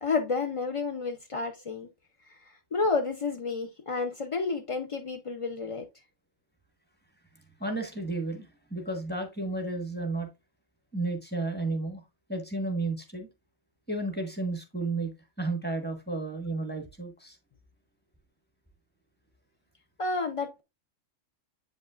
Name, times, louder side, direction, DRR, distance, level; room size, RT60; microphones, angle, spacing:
voice 1, 0.0-1.9 2.3-5.9 20.0-20.6, left 4 dB, 50° left, 0.4 m, -30 dB
voice 2, 7.6-10.3 10.9-12.0 12.3-13.3 13.9-17.4, right 2 dB, 10° left, 1.2 m, -32 dB
8.0 x 5.3 x 2.4 m
omnidirectional pair, 1.3 m